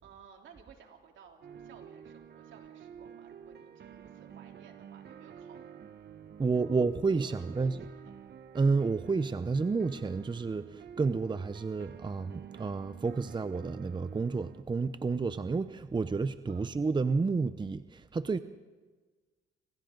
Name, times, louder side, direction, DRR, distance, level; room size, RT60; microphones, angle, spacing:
voice 1, 0.0-5.6 6.4-8.1 16.5-16.7, right 7 dB, 75° right, 3.7 m, -57 dB
sound 1, 1.4-14.6, right 8 dB, 55° right, 1.4 m, -50 dB
voice 2, 6.4-7.8 8.5-18.4, right 4 dB, 25° right, 0.8 m, -30 dB
28.5 x 25.5 x 4.0 m
cardioid pair, 90°, 20 cm